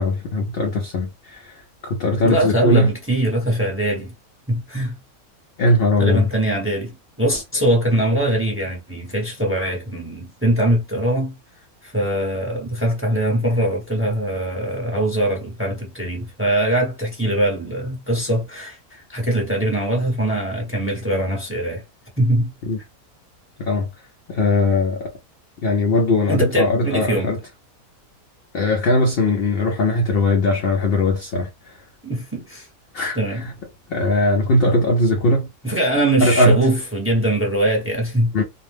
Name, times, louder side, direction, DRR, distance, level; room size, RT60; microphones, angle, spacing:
voice 1, 0.0-1.6 1.8-2.9 5.6-6.3 22.7-22.8 23.6-23.9 24.3-25.1 25.6-27.4 28.5-31.5 32.9-33.5 33.9-35.5 36.2-36.6 38.3-38.4, left 2 dB, 65° left, 0.6 m, -19 dB
voice 2, 2.2-4.1 4.5-4.9 6.0-11.3 11.8-21.8 22.2-22.5 26.3-27.3 32.0-32.7 33.1-33.4 35.6-38.3, right 1 dB, 10° right, 0.7 m, -22 dB
2.6 x 2.0 x 3.2 m
omnidirectional pair, 1.6 m